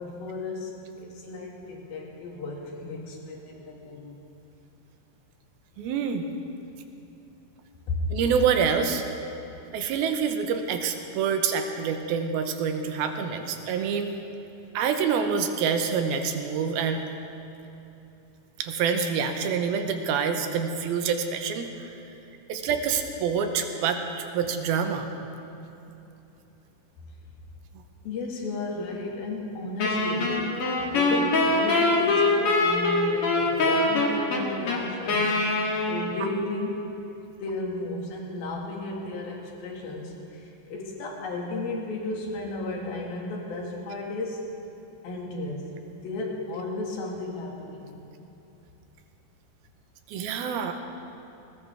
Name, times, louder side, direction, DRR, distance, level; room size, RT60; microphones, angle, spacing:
voice 1, 0.0-4.2 7.9-8.0 28.0-35.4 35.9-36.9 37.4-44.6 45.0-45.8 46.0-48.0 50.1-50.3, left 2 dB, 65° left, -1 dB, 3.7 m, -34 dB
voice 2, 5.8-6.3 8.1-9.0 9.7-14.1 14.7-17.0 18.6-21.9 22.5-25.1 50.1-50.8, right 6 dB, 75° right, 6 dB, 2.6 m, -26 dB
Wind instrument woodwind instrument, 29.8-36.4, left 2 dB, 50° left, 2.0 m, -24 dB
19.5 x 19.5 x 3.5 m, 2.9 s
omnidirectional pair, 4.7 m